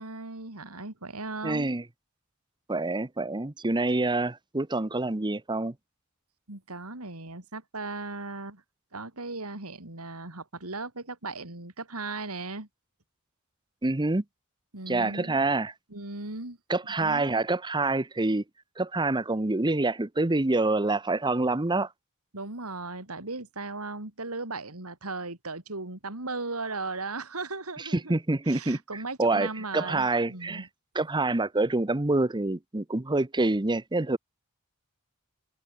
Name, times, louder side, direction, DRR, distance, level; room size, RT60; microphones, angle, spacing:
voice 1, 0.0-1.7 6.5-8.6 8.9-12.7 14.7-15.4 15.9-16.6 17.0-17.3 22.3-28.1 28.5-30.7, right 3 dB, 85° right, 4.1 m, -37 dB
voice 2, 1.4-1.8 2.7-5.7 13.8-14.2 14.9-15.7 16.7-18.4 18.8-21.9 28.1-28.8 29.2-29.5 29.7-30.7 30.9-34.2, right 2 dB, 20° right, 0.9 m, -26 dB
head